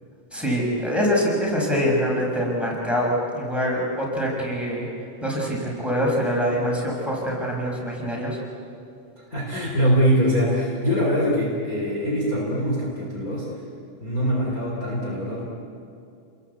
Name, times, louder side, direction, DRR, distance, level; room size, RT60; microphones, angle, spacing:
voice 1, 0.3-4.9 5.2-8.4, equal, ahead, -3 dB, 5.7 m, -24 dB
voice 2, 9.2-13.5 14.0-15.4, equal, 25° left, -4 dB, 4.1 m, -23 dB
29.5 x 21.5 x 8.3 m, 2.5 s
omnidirectional pair, 3.9 m